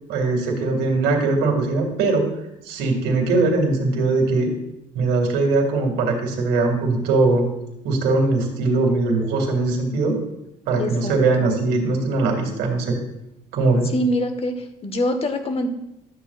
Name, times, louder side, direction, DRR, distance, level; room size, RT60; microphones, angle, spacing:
voice 1, 0.1-2.2 2.6-4.5 4.9-7.5 7.8-10.2 10.7-13.0 13.5-13.9, right 3 dB, 85° right, 1 dB, 2.1 m, -20 dB
voice 2, 10.7-11.5 13.9-14.5 14.8-15.7, left 1 dB, 35° left, 8 dB, 1.1 m, -24 dB
12.5 x 8.1 x 2.4 m, 0.87 s
cardioid pair, 110°, 17 cm